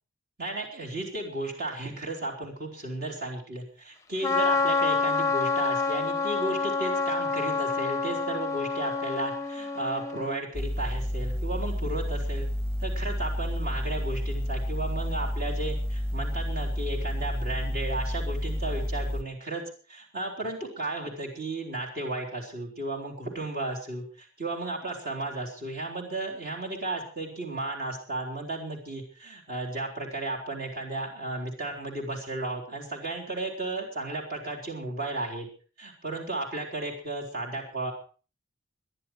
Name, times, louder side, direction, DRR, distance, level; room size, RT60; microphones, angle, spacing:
voice 1, 0.4-12.5 12.8-19.6 19.9-35.5 35.8-37.9, right 2 dB, 50° right, -1 dB, 3.9 m, -34 dB
Trumpet, 4.2-10.4, left 4 dB, 15° left, 0.7 m, -28 dB
sound 1, 10.5-19.2, equal, 15° right, 1.8 m, -30 dB
21.0 x 11.5 x 4.7 m, 0.39 s
head